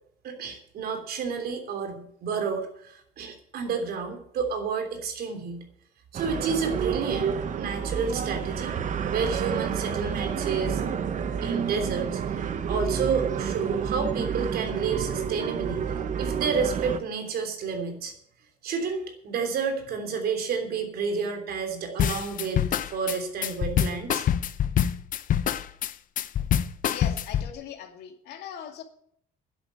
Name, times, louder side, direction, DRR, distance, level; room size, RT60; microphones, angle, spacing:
voice 1, 0.2-5.6 6.1-8.8 9.1-10.8 11.4-12.4 12.7-15.9 16.2-18.1 18.6-24.2, right 5 dB, 65° right, 5 dB, 3.3 m, -30 dB
sound 1, 6.1-17.0, right 7 dB, 50° right, 1.2 m, -29 dB
sound 2, 22.0-27.5, left 10 dB, 50° left, 0.8 m, -25 dB
voice 2, 26.9-28.8, left 8 dB, 75° left, 5 dB, 2.3 m, -40 dB
10.5 x 8.7 x 8.2 m, 0.67 s
cardioid pair, 110°, 17 cm